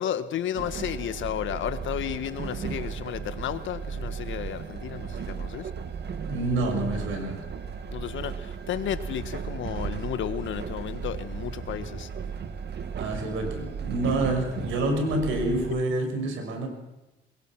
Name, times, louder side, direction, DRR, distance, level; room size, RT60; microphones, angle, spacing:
voice 1, 0.0-5.7 7.9-12.1, left 10 dB, 75° left, 1.5 m, -33 dB
Train, 0.5-15.7, right 6 dB, 60° right, 2.0 m, -35 dB
voice 2, 6.2-7.4 13.0-16.7, right 2 dB, 80° right, 6.0 m, -27 dB
23.5 x 21.5 x 6.1 m
cardioid pair, 90°, 20 cm